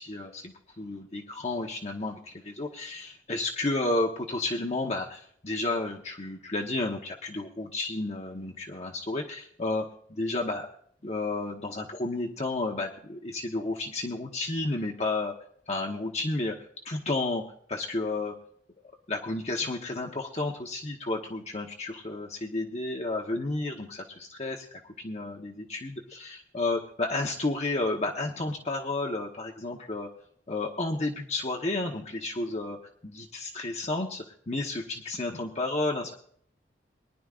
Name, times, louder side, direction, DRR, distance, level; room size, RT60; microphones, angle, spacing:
voice 1, 0.0-10.7 11.0-15.3 15.7-17.4 17.7-18.4 19.1-30.1 30.5-36.1, left 2 dB, 35° left, 1 dB, 1.2 m, -32 dB
23.0 x 11.0 x 2.5 m, 0.63 s
head